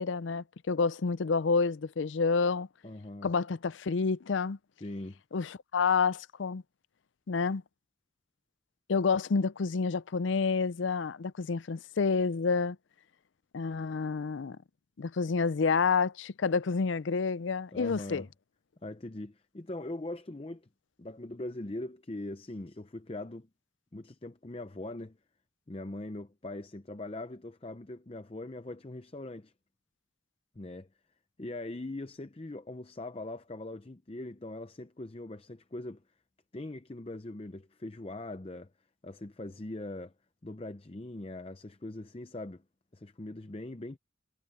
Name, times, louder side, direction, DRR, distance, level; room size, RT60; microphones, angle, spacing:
voice 1, 0.0-2.7 3.2-4.6 5.3-6.6 7.3-7.6 8.9-12.8 13.5-14.6 15.0-18.2, left 5 dB, 80° left, 0.5 m, -29 dB
voice 2, 2.8-3.3 4.8-5.2 17.7-18.3 18.8-20.7 21.0-23.5 23.9-25.2 25.7-29.5 30.6-30.9 31.4-36.0 36.5-38.7 39.0-40.1 40.4-42.6 42.9-44.0, left 2 dB, 30° left, 0.6 m, -41 dB
head